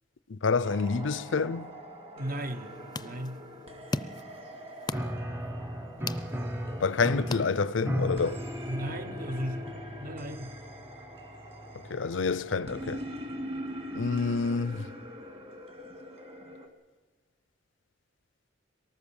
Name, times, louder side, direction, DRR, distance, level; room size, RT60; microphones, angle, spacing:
voice 1, 0.3-1.7 6.8-8.4 11.9-13.0 13.9-14.9, left 4 dB, 85° left, 0.6 m, -28 dB
sound 1, 0.6-16.7, equal, 30° right, 2.2 m, -43 dB
voice 2, 2.1-3.5 8.7-10.6, right 1 dB, 50° right, 1.2 m, -37 dB
sound 2, 2.4-8.1, left 3 dB, 20° left, 0.6 m, -40 dB
Piano, 4.9-13.4, equal, 10° right, 0.9 m, -37 dB
23.5 x 19.0 x 7.2 m
head